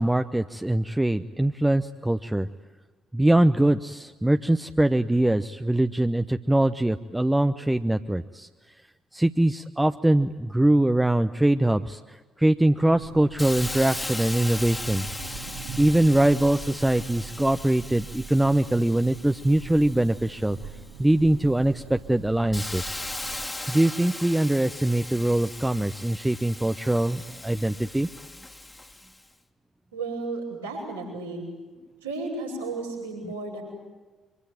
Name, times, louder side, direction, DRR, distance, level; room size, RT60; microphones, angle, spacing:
voice 1, 0.0-2.5 3.1-8.5 9.1-15.1 15.8-20.6 21.0-23.0 23.7-28.1 33.2-33.3, right 1 dB, 10° right, 8 dB, 0.9 m, -23 dB
sound 1, 12.9-23.4, right 6 dB, 65° right, 2.3 m, -42 dB
Hiss, 13.4-21.0 21.5-29.2, left 2 dB, 15° left, 2.1 m, -38 dB
voice 2, 29.9-31.4 32.0-33.6, right 3 dB, 85° right, -5 dB, 7.6 m, -33 dB
25.0 x 24.5 x 9.3 m, 1.3 s
figure-of-eight pair, 45°, 0 cm